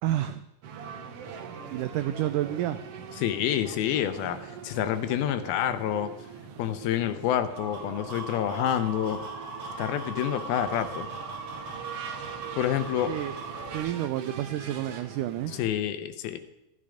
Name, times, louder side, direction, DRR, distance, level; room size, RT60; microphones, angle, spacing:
voice 1, 0.0-0.4 1.7-2.8 13.1-13.4 13.7-15.6, right 13 dB, 90° right, 11 dB, 1.8 m, -30 dB
sound 1, 0.6-15.6, right 6 dB, 70° right, 1.4 m, -42 dB
voice 2, 3.2-6.1 6.6-9.2 9.8-11.1 12.5-13.1 15.5-16.4, left 11 dB, 85° left, 10 dB, 2.7 m, -28 dB
sound 2, 7.4-13.8, right 3 dB, 55° right, 4.6 m, -39 dB
13.5 x 12.5 x 5.1 m, 0.89 s
omnidirectional pair, 4.3 m